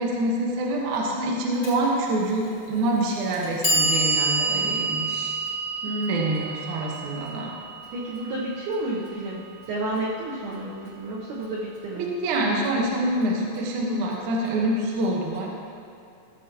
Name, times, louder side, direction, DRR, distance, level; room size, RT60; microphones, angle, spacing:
voice 1, 0.0-5.4 6.1-7.5 12.0-15.5, right 1 dB, 65° right, -2 dB, 2.0 m, -26 dB
Clock, 1.6-1.7 2.7-2.8 3.3-9.4, right 2 dB, 55° left, 0.8 m, -28 dB
voice 2, 5.8-6.4 7.9-12.1, right 1 dB, 85° right, -5 dB, 1.8 m, -31 dB
17.0 x 6.9 x 3.0 m, 2.6 s
omnidirectional pair, 5.1 m